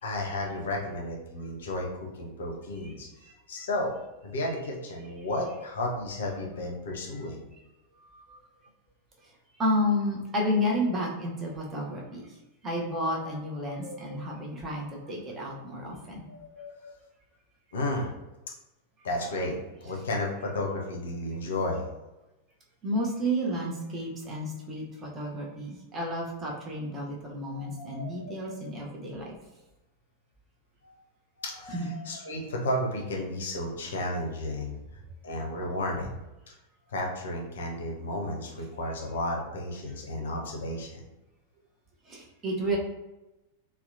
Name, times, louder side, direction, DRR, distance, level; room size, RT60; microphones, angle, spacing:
voice 1, 0.0-3.1 3.5-3.9 4.2-7.4 13.6-14.3 16.3-16.9 17.7-18.1 19.0-21.8 27.5-28.7 30.8-31.0 31.4-34.8 35.2-36.2 36.9-41.0, left 1 dB, 60° left, 0 dB, 0.5 m, -33 dB
voice 2, 3.2-3.7 8.0-8.4 9.6-12.3 12.6-16.2 22.8-29.3 31.7-31.9 42.1-42.8, equal, 25° right, -2 dB, 0.6 m, -31 dB
2.7 x 2.0 x 2.5 m, 0.99 s
figure-of-eight pair, 90°, 0 cm